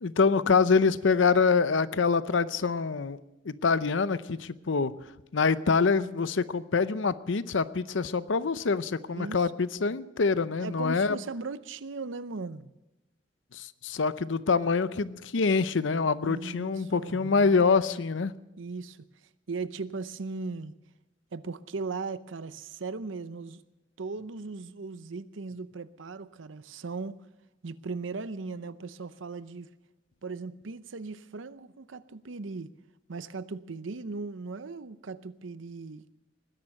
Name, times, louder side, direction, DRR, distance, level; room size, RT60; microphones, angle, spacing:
voice 1, 0.0-3.2 3.5-4.9 5.3-11.2 13.5-18.3, left 4 dB, 75° left, 0.7 m, -25 dB
voice 2, 8.9-9.4 10.6-12.7 16.2-17.7 18.6-19.0 19.5-20.7 21.3-23.6 24.0-27.2 27.6-29.7 30.2-32.7 33.1-36.0, right 4 dB, 90° right, 0.7 m, -38 dB
20.0 x 11.0 x 6.5 m
head